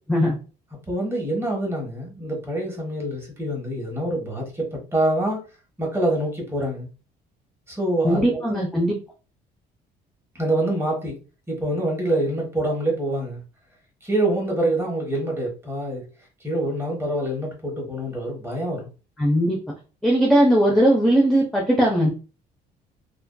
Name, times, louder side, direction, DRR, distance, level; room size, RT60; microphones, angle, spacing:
voice 1, 0.9-5.4 5.8-6.9 7.7-8.6 10.3-11.2 11.5-13.4 14.0-16.0 16.4-18.9, right 1 dB, 15° right, 1.0 m, -25 dB
voice 2, 8.0-9.0 19.2-19.6 20.0-22.1, equal, ahead, 0.5 m, -19 dB
2.5 x 2.3 x 2.2 m
cardioid pair, 110°, 17 cm